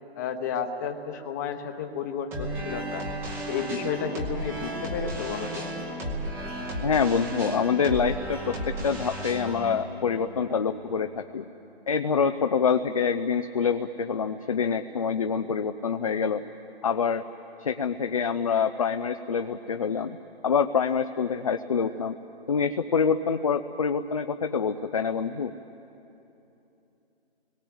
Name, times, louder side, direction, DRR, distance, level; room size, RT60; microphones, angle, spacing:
voice 1, 0.2-3.0 3.5-5.7, left 6 dB, 15° left, 6 dB, 1.0 m, -32 dB
sound 1, 2.3-11.5, right 1 dB, 5° right, 0.9 m, -34 dB
voice 2, 6.8-11.5 11.9-16.4 16.8-17.2 17.6-20.2 20.4-22.2 22.5-25.5, left 6 dB, 35° left, 8 dB, 0.5 m, -26 dB
29.0 x 21.5 x 7.9 m, 2.9 s
figure-of-eight pair, 155°, 32 cm